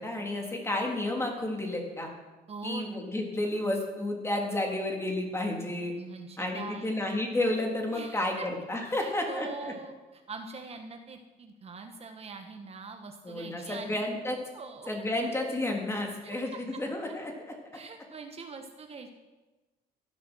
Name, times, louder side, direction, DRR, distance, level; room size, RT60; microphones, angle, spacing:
voice 1, 0.0-2.1 2.6-5.9 6.4-9.7 13.2-14.4 14.9-17.3, left 1 dB, 15° left, 1 dB, 3.8 m, -31 dB
voice 2, 2.5-3.0 6.0-6.9 7.9-8.5 9.0-14.0 14.5-14.9 16.2-16.4 17.7-19.1, right 4 dB, 35° right, 5 dB, 1.5 m, -43 dB
16.5 x 11.5 x 6.4 m, 1.2 s
cardioid pair, 110°, 17 cm